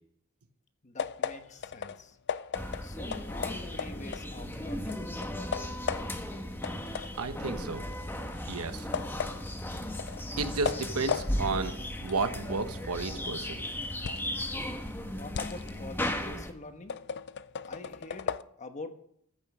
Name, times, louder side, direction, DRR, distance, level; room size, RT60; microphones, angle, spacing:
voice 1, 0.8-2.2 2.8-5.5 15.1-17.0 17.6-18.9, left 2 dB, 35° left, 7 dB, 1.2 m, -45 dB
sound 1, 1.0-4.6 4.9-6.3 6.6-14.4 14.8-18.4, left 7 dB, 50° left, 0.5 m, -37 dB
sound 2, 2.5-16.5, left 1 dB, 10° left, 1.2 m, -36 dB
voice 2, 7.2-7.8 8.5-8.9 10.4-13.6, right 4 dB, 80° right, 8 dB, 1.2 m, -32 dB
14.5 x 6.6 x 6.2 m, 0.69 s
head